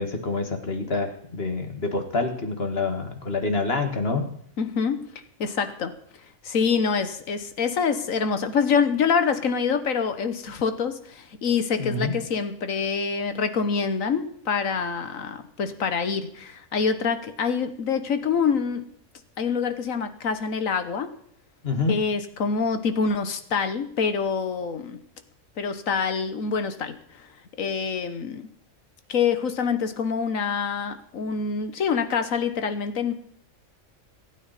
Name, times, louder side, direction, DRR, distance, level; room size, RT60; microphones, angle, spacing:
voice 1, 0.0-4.3 11.8-12.2 21.6-22.0, left 3 dB, 50° left, 5 dB, 2.1 m, -27 dB
voice 2, 4.6-5.1 5.4-5.9 6.4-18.8 19.4-21.1 21.9-25.0 25.6-27.3 27.6-28.5 29.1-33.1, left 6 dB, 85° left, 10 dB, 1.6 m, -26 dB
26.0 x 9.2 x 4.2 m, 0.64 s
omnidirectional pair, 1.4 m